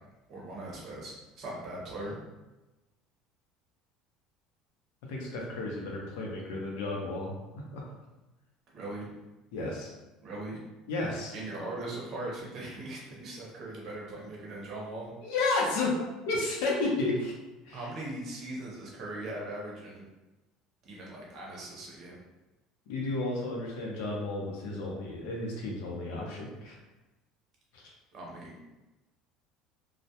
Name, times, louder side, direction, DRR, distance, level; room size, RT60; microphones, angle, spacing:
voice 1, 0.3-2.2 8.7-9.1 10.2-10.6 11.3-15.1 17.7-20.1 20.8-22.2 28.1-28.6, right 2 dB, 35° right, -4 dB, 0.6 m, -40 dB
voice 2, 5.1-7.3 7.7-7.8 9.5-9.9 10.9-11.3 15.2-17.3 17.6-17.8 22.9-26.8 27.7-27.9, left 2 dB, 80° left, -2 dB, 0.7 m, -32 dB
2.2 x 2.1 x 2.8 m, 1.1 s
cardioid pair, 170°, 0 cm